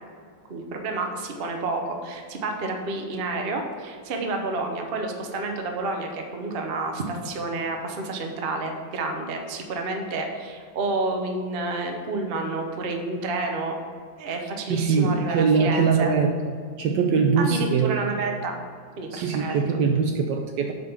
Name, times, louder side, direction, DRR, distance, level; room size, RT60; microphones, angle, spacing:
voice 1, 0.5-13.8 14.2-16.1 17.4-18.6 19.0-19.8, right 3 dB, 50° right, 3 dB, 0.7 m, -30 dB
voice 2, 14.7-18.0 19.1-20.7, right 5 dB, 75° right, 4 dB, 1.1 m, -22 dB
8.3 x 4.1 x 6.9 m, 2.1 s
omnidirectional pair, 2.3 m